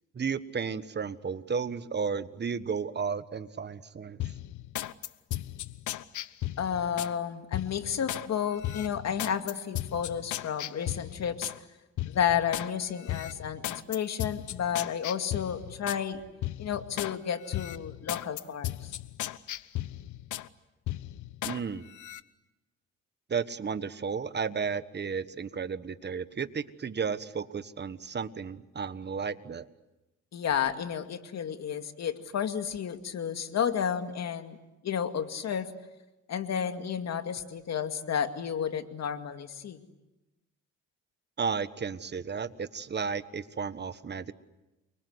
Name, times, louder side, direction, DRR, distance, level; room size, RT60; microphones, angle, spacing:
voice 1, 0.1-4.2 21.4-21.8 23.3-29.7 41.4-44.3, right 6 dB, 35° right, 13 dB, 1.4 m, -33 dB
sound 1, 4.2-7.1 7.5-8.3 8.6-11.6 12.0-12.7 13.1-16.0 16.4-17.2 17.5-20.5 20.9-21.6 21.9-22.2, left 14 dB, 75° left, 1.0 m, -36 dB
voice 2, 6.6-11.5 12.1-16.2 16.6-18.9 30.3-34.6 34.8-35.7 36.3-39.8, left 8 dB, 60° left, 7 dB, 2.3 m, -31 dB
30.0 x 24.0 x 8.1 m, 1.0 s
cardioid pair, 90°, 30 cm